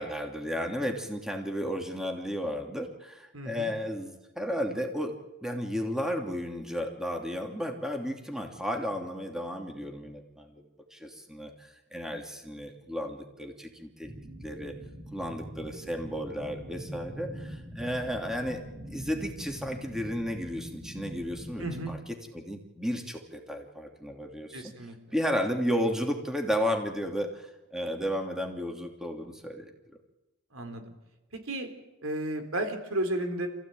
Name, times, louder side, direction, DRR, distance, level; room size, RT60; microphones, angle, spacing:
voice 1, 0.0-5.2 5.4-10.6 10.9-14.1 14.4-14.7 15.1-22.0 22.3-24.7 25.1-29.7, equal, 5° right, 3 dB, 2.8 m, -33 dB
voice 2, 3.3-3.7 21.6-21.9 24.5-25.0 30.5-30.9 31.5-31.7 32.0-33.5, right 1 dB, 80° right, 6 dB, 3.9 m, -33 dB
sound 1, 14.0-21.9, equal, 25° right, 5.5 m, -43 dB
28.0 x 16.0 x 9.1 m, 1.0 s
head